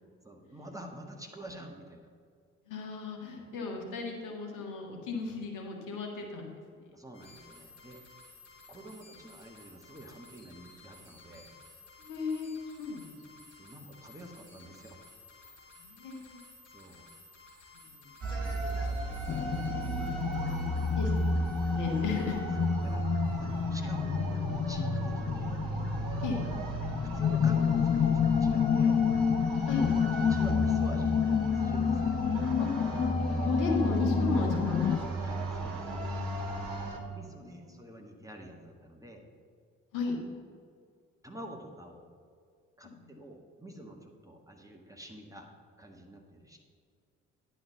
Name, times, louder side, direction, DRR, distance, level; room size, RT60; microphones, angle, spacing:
voice 1, 0.2-2.1 3.4-3.5 6.9-8.0 8.7-11.5 13.6-15.0 16.7-17.1 18.3-18.6 20.5-20.8 22.6-25.6 26.4-26.7 27.1-29.0 30.1-32.2 35.2-36.0 37.0-39.3 41.2-42.0 42.8-45.5 45.8-46.6, right 1 dB, 10° right, 1 dB, 1.6 m, -47 dB
voice 2, 2.7-6.6 12.0-12.5 12.8-13.2 15.8-16.4 17.9-18.0 19.9-20.4 20.7-22.4 26.2-26.4 29.7-29.9 32.6-32.7 33.4-35.4 39.9-40.2 42.8-43.2, left 4 dB, 55° left, 1 dB, 1.7 m, -35 dB
sound 1, 7.1-23.0, left 3 dB, 80° left, 2.9 m, -56 dB
sound 2, 18.2-37.0, right 1 dB, 65° right, 1.5 m, -34 dB
sound 3, 19.3-35.0, left 7 dB, 20° left, 0.4 m, -29 dB
10.5 x 5.0 x 7.2 m, 2.2 s
figure-of-eight pair, 40°, 37 cm